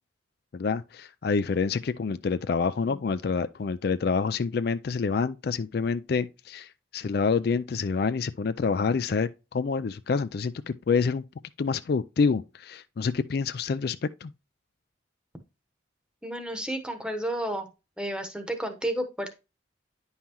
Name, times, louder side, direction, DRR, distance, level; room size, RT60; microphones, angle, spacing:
voice 1, 0.5-11.2 11.6-14.3, left 5 dB, 55° left, 0.4 m, -27 dB
voice 2, 16.2-17.7 18.0-19.4, right 1 dB, 5° right, 1.0 m, -31 dB
9.9 x 5.5 x 3.0 m
head